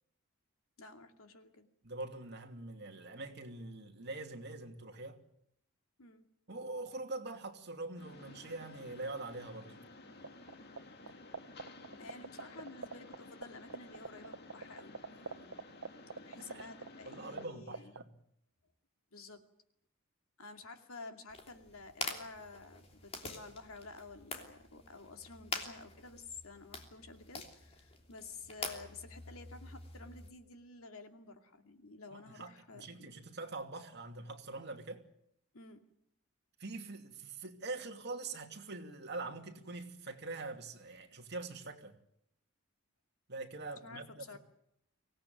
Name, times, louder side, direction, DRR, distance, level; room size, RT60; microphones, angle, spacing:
voice 1, 0.8-1.7 6.0-6.3 12.0-15.6 16.2-17.9 19.1-19.4 20.4-33.1 35.5-35.9 43.8-44.4, left 3 dB, 80° left, 2.5 m, -51 dB
voice 2, 1.8-5.2 6.5-9.7 16.3-16.7 17.0-18.1 32.1-35.0 36.6-41.9 43.3-44.4, right 3 dB, 50° right, 2.7 m, -44 dB
Mechanisms, 8.0-17.5, left 2 dB, 50° left, 2.1 m, -54 dB
sound 1, 10.2-10.8 11.1-13.1 13.4-13.5 13.7-17.4 17.7-18.0, right 4 dB, 90° right, 1.1 m, -40 dB
sound 2, 21.3-30.3, left 3 dB, 30° left, 3.1 m, -46 dB
24.5 x 17.5 x 9.4 m
head